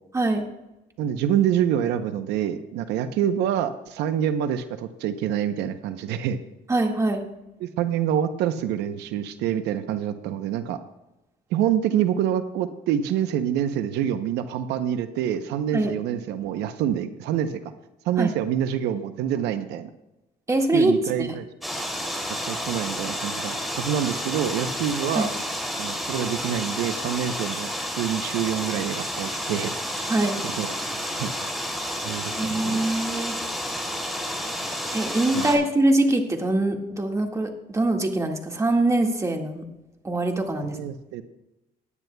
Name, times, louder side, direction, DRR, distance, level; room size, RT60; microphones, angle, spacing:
voice 1, 0.1-0.5 6.7-7.2 15.7-15.9 18.2-18.3 20.5-21.3 25.1-25.3 30.1-30.4 32.4-33.4 34.9-39.6 40.0-40.8, right 2 dB, 15° right, 3 dB, 1.7 m, -23 dB
voice 2, 1.0-6.4 7.6-10.8 11.5-17.6 18.0-19.9 20.7-21.5 22.3-25.3 25.8-27.7 28.0-29.7 30.6-30.7 31.2-31.3 32.0-32.8 35.3-35.6 40.6-41.2, right 9 dB, 85° right, 10 dB, 0.7 m, -26 dB
sound 1, 21.6-35.6, equal, ahead, 2.8 m, -30 dB
18.0 x 10.5 x 2.2 m, 0.95 s
cardioid pair, 110°, 17 cm